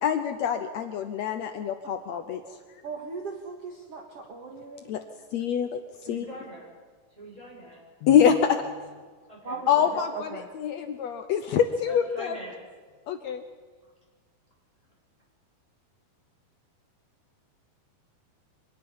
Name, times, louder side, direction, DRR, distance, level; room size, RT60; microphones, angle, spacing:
voice 1, 0.0-2.6 4.9-5.0 5.3-5.8 6.1-6.2 8.0-8.7 9.7-12.3 13.1-13.4, left 8 dB, 85° left, 7 dB, 1.5 m, -25 dB
voice 2, 2.8-4.9 9.4-10.0 10.3-10.5, right 4 dB, 50° right, 1 dB, 2.3 m, -38 dB
voice 3, 6.0-6.7 7.2-7.8 9.3-10.0 11.9-12.6, equal, 10° right, -3 dB, 7.5 m, -43 dB
25.0 x 19.5 x 5.6 m, 1.5 s
omnidirectional pair, 4.2 m